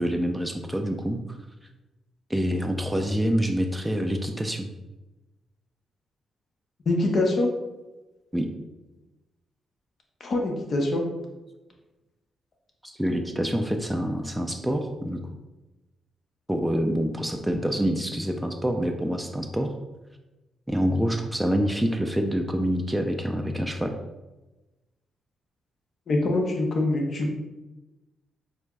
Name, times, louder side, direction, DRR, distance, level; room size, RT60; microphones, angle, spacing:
voice 1, 0.0-1.4 2.3-4.7 8.3-8.5 12.8-15.2 16.5-19.8 20.7-24.0, equal, 5° right, 3 dB, 0.4 m, -26 dB
voice 2, 6.9-7.5 10.2-11.0 26.1-27.3, left 2 dB, 55° left, 1 dB, 0.8 m, -24 dB
4.4 x 2.5 x 2.2 m, 1.1 s
supercardioid pair, 50°, 0 cm